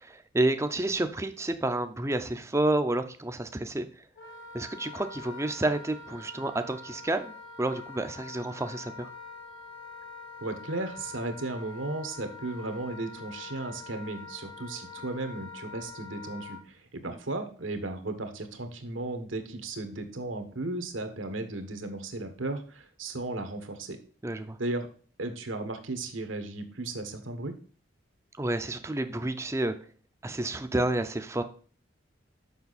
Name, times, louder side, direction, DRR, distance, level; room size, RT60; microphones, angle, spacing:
voice 1, 0.0-4.0 4.5-7.3 7.6-9.1 24.2-24.6 28.4-29.7 30.2-31.4, right 2 dB, 15° right, 9 dB, 0.5 m, -30 dB
Wind instrument woodwind instrument, 4.2-16.6, left 4 dB, 80° left, 2.3 m, -45 dB
voice 2, 10.4-24.0 24.6-24.9 25.2-27.5, right 2 dB, 75° right, 8 dB, 1.4 m, -35 dB
7.1 x 5.8 x 4.1 m, 0.42 s
head